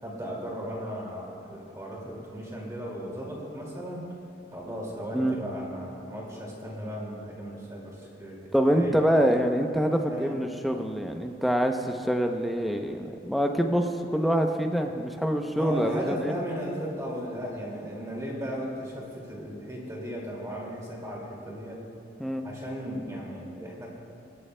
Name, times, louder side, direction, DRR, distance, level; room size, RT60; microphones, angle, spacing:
voice 1, 0.0-4.0 4.5-9.0 10.0-10.3 15.5-21.8 22.4-23.9, equal, 20° right, -3 dB, 2.2 m, -36 dB
voice 2, 8.5-16.3 22.2-22.4, equal, ahead, 4 dB, 0.6 m, -25 dB
21.0 x 12.5 x 2.2 m, 2.7 s
head